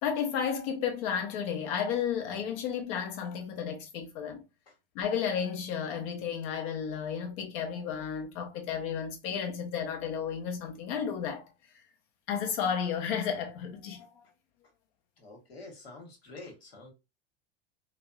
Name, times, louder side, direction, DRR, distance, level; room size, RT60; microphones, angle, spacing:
voice 1, 0.0-4.4 4.9-11.5 12.3-14.1, left 7 dB, 60° left, 0.9 m, -32 dB
voice 2, 15.2-16.9, left 2 dB, 85° left, 1.3 m, -47 dB
3.3 x 2.1 x 2.3 m
hypercardioid pair, 90°, 30 cm